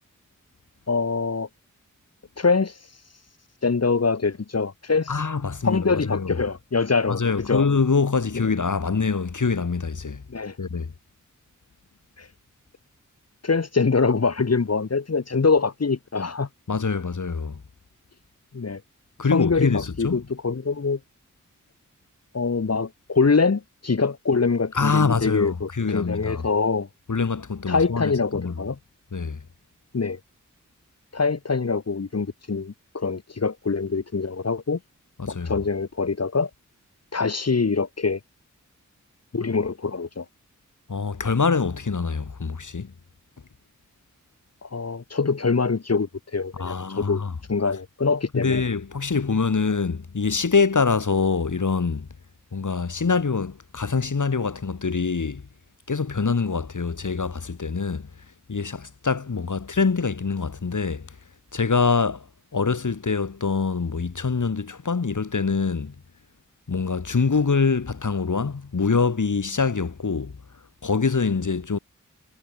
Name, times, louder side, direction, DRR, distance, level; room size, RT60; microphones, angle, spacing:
voice 1, 0.9-1.5 2.4-2.8 3.6-5.1 5.6-7.7 10.3-10.6 12.2-12.3 13.4-16.5 18.5-18.8 19.3-21.0 22.3-26.9 27.7-28.8 29.9-30.2 31.1-34.8 35.3-36.5 37.1-38.2 39.3-40.2 44.6-47.2 47.5-48.6, left 4 dB, 55° left, 1.7 m, -24 dB
voice 2, 5.1-6.4 7.1-10.2 10.6-10.9 16.7-17.6 19.2-20.2 24.7-26.4 27.1-28.5 29.1-29.4 35.2-35.6 40.9-42.9 46.6-47.3 48.3-52.1 52.5-55.4 55.9-58.1 58.5-61.1 61.5-62.3 62.5-65.9 66.7-70.4 70.8-71.8, left 4 dB, 70° left, 5.0 m, -24 dB
wide cardioid pair, 60°, 31 cm